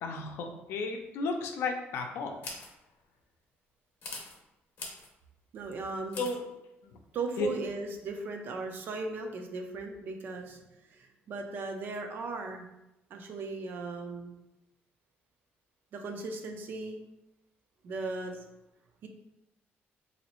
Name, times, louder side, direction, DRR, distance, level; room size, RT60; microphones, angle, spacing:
voice 1, 0.0-2.3 6.2-6.4 6.8-7.0 7.4-7.5, left 3 dB, 75° left, 4 dB, 0.5 m, -33 dB
sound 1, 2.4-2.7 4.0-4.4 4.8-5.1 6.1-6.4, left 3 dB, 45° left, 0.8 m, -41 dB
voice 2, 5.5-6.2 7.1-12.7 13.1-14.4 15.9-17.0 17.8-18.5 19.0-19.1, right 3 dB, 50° right, 4 dB, 0.5 m, -37 dB
4.0 x 2.7 x 3.0 m, 0.91 s
cardioid pair, 175°, 4 cm